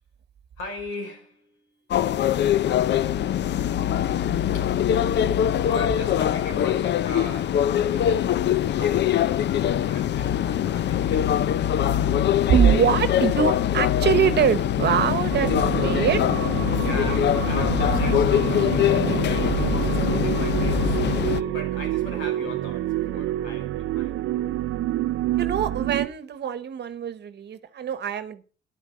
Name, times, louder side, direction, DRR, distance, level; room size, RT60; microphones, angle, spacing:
voice 1, 0.6-1.8 4.5-4.8 5.6-9.3 9.7-11.4 15.2-15.4 16.7-24.2, left 3 dB, 90° left, 5.2 m, -39 dB
sound 1, 1.9-21.4, left 10 dB, 60° left, 0.6 m, -23 dB
voice 2, 12.5-15.5 15.8-16.2 25.4-28.5, right 8 dB, 60° right, 1.1 m, -23 dB
sound 2, 15.3-26.1, right 13 dB, 85° right, 0.6 m, -27 dB
11.0 x 8.2 x 6.2 m
cardioid pair, 90°, 20 cm